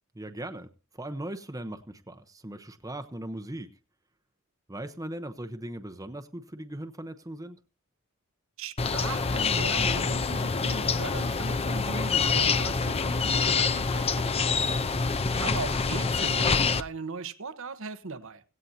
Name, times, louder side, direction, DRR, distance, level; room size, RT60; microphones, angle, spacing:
voice 1, 0.2-0.7 0.9-3.7 4.7-7.6 15.1-15.5, right 1 dB, 15° right, 0.8 m, -39 dB
voice 2, 8.6-14.8 15.4-18.4, right 4 dB, 65° right, 1.1 m, -38 dB
sound 1, 8.8-16.8, left 5 dB, 30° left, 0.6 m, -26 dB
17.0 x 16.0 x 2.8 m
head